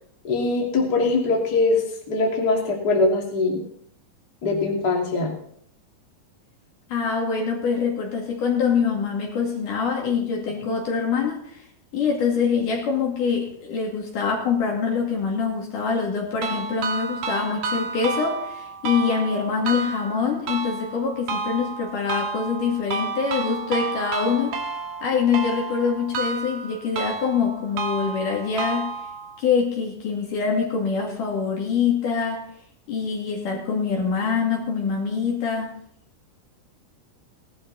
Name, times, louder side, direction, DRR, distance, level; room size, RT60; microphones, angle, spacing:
voice 1, 0.2-3.6 4.4-5.3, left 3 dB, 30° left, -1 dB, 2.8 m, -22 dB
voice 2, 6.9-11.4 11.9-24.6 25.0-29.0 29.4-32.4 32.9-35.7, left 6 dB, 70° left, -1 dB, 4.0 m, -24 dB
sound 1, 16.4-29.4, right 4 dB, 70° right, 3.1 m, -31 dB
17.5 x 12.0 x 4.2 m, 0.66 s
omnidirectional pair, 3.9 m